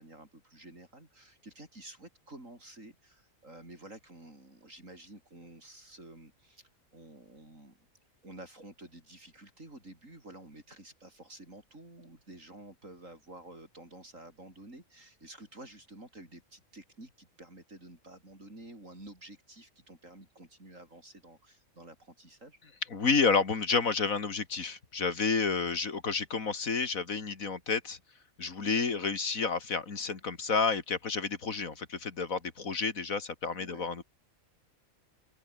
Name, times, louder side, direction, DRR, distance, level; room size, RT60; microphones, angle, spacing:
voice 1, 0.0-7.8 8.2-22.6 28.6-28.8 33.6-33.9, right 1 dB, 65° right, 7.3 m, -51 dB
voice 2, 22.9-28.0 28.4-34.0, left 4 dB, 75° left, 2.7 m, -30 dB
open air
omnidirectional pair, 1.4 m